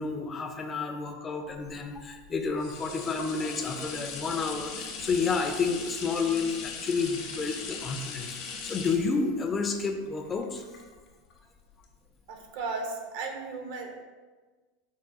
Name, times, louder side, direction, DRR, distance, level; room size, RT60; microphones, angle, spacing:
voice 1, 0.0-8.3 8.6-10.6, left 4 dB, 25° left, 5 dB, 0.5 m, -30 dB
sound 1, 1.6-11.3 11.8-11.9, left 5 dB, 55° left, 0.8 m, -39 dB
voice 2, 12.3-14.0, right 4 dB, 70° right, 2 dB, 0.8 m, -35 dB
4.6 x 2.2 x 4.7 m, 1.3 s
supercardioid pair, 115°, 0 cm